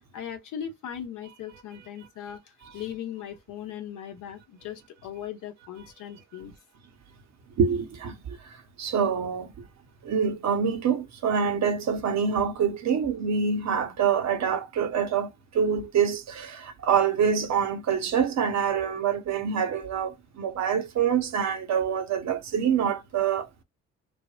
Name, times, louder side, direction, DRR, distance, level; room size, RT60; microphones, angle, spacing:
voice 1, 0.1-6.5, left 9 dB, 60° left, 0.8 m, -38 dB
voice 2, 7.6-8.5 8.8-9.7 10.0-23.5, right 7 dB, 50° right, 0.8 m, -26 dB
3.3 x 2.1 x 2.3 m
hypercardioid pair, 50°, 36 cm